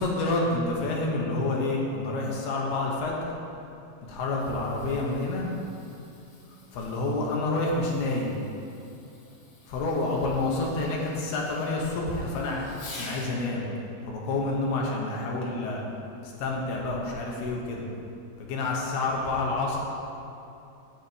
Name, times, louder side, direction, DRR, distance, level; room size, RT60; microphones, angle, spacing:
voice 1, 0.0-3.4 4.1-5.5 6.5-8.4 9.7-12.6 13.0-13.7 14.0-15.8 16.2-17.9 18.4-19.8, left 2 dB, 75° left, -2 dB, 3.5 m, -28 dB
Fireworks, 4.2-13.4 15.4-15.7 16.4-16.5, left 2 dB, 55° left, 1.4 m, -49 dB
17.5 x 10.0 x 3.4 m, 2.7 s
omnidirectional pair, 4.8 m